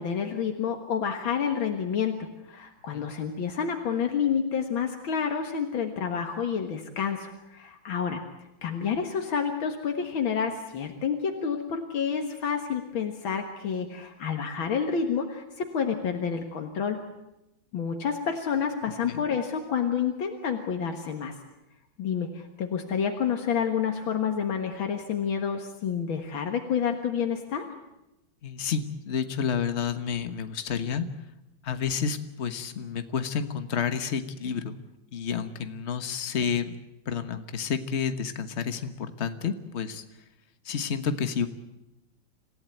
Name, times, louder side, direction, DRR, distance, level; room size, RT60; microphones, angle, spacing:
voice 1, 0.0-8.2 8.6-17.0 17.7-21.3 22.0-27.6, left 7 dB, 80° left, 4 dB, 2.4 m, -29 dB
voice 2, 28.4-31.1 31.6-34.8 35.1-36.7 37.1-40.0 40.6-41.5, left 6 dB, 40° left, 9 dB, 1.4 m, -30 dB
27.0 x 15.5 x 9.1 m, 0.92 s
omnidirectional pair, 2.2 m